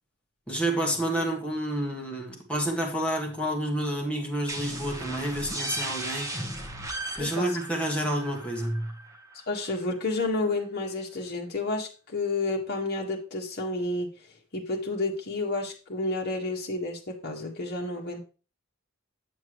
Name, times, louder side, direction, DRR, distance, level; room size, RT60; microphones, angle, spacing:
voice 1, 0.5-6.3 7.2-8.9, right 1 dB, 5° left, 1.7 m, -29 dB
sound 1, 4.5-9.9, right 1 dB, 15° right, 1.2 m, -36 dB
voice 2, 9.5-14.1 14.5-18.2, left 2 dB, 50° left, 1.6 m, -30 dB
8.0 x 7.2 x 3.1 m
head